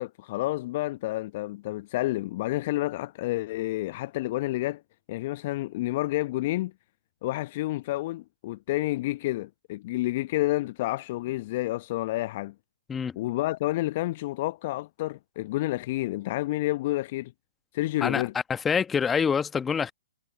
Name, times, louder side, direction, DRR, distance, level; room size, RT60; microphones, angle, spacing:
voice 1, 0.0-4.8 5.1-6.7 7.2-12.5 13.2-17.3 17.7-18.3, left 17 dB, 45° left, 0.7 m, -29 dB
voice 2, 18.5-19.9, left 6 dB, 15° left, 1.2 m, -26 dB
figure-of-eight pair, 120°, 0 cm